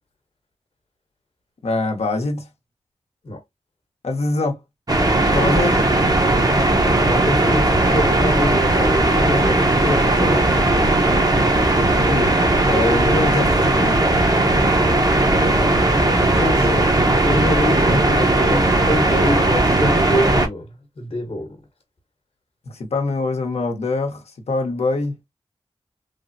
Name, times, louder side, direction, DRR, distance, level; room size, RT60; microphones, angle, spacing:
voice 1, 1.6-2.5 4.0-4.6 5.3-5.8 12.0-12.3 12.6-14.0 22.7-25.1, left 3 dB, 85° left, 0.8 m, -24 dB
sound 1, 4.9-20.5, right 2 dB, 35° right, 0.7 m, -17 dB
voice 2, 7.1-10.9 15.3-20.7 21.0-21.6, left 1 dB, 65° left, 1.0 m, -26 dB
3.2 x 2.0 x 2.5 m
cardioid pair, 55°, 10 cm